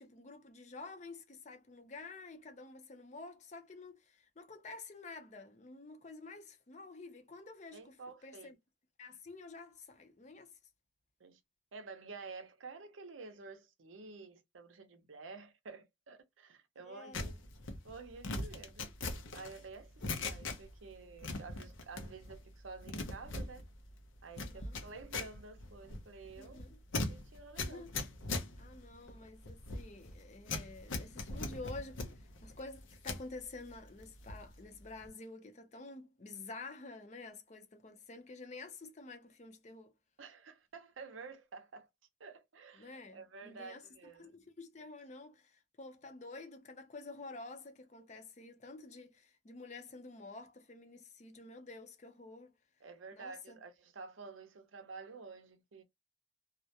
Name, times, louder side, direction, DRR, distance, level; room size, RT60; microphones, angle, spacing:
voice 1, 0.0-8.0 8.2-8.6 9.0-10.5 16.9-17.3 24.4-24.8 26.4-26.8 27.6-28.0 28.6-39.9 42.8-43.9 44.2-52.5 53.1-53.6, left 3 dB, 35° left, 0.5 m, -50 dB
voice 2, 7.7-8.5 11.2-11.4 11.7-17.4 17.8-18.9 19.3-23.6 24.2-26.6 26.9-27.8 40.2-41.9 42.2-44.3 52.8-55.8, right 4 dB, 85° right, 0.6 m, -50 dB
sound 1, 17.1-20.9 21.2-22.4 22.7-33.3 33.7-34.5 34.8-35.1, left 3 dB, 85° left, 0.6 m, -41 dB
2.3 x 2.1 x 2.7 m
head